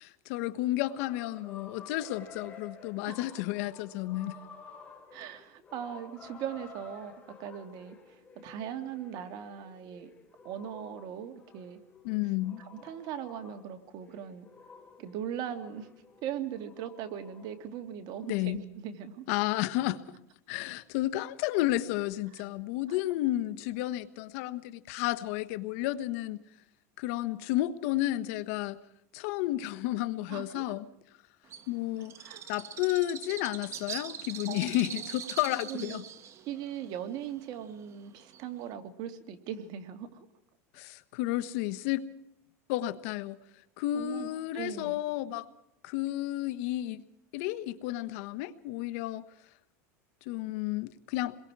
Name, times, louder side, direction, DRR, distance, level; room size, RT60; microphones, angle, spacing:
voice 1, 0.0-4.4 12.0-12.6 18.3-18.6 19.3-20.2 20.5-26.4 27.0-28.8 29.1-30.8 31.7-32.1 32.5-36.0 40.7-42.1 42.7-43.4 43.8-45.5 45.8-47.0 47.3-49.2 50.3-51.4, left 15 dB, 65° left, 14 dB, 1.2 m, -32 dB
sound 1, 0.8-17.8 18.1-18.4, left 5 dB, 20° left, 5.0 m, -52 dB
voice 2, 5.1-8.0 8.4-10.1 10.4-11.8 12.6-14.5 15.0-15.9 16.2-19.2 22.3-22.4 30.3-30.6 32.2-32.4 34.5-35.0 35.7-36.0 36.5-40.3 43.9-45.0, right 9 dB, 50° right, 8 dB, 2.2 m, -39 dB
Bird, 31.5-38.7, right 9 dB, 35° right, 1.6 m, -43 dB
28.5 x 22.0 x 4.8 m, 0.80 s
supercardioid pair, 130°, 8 cm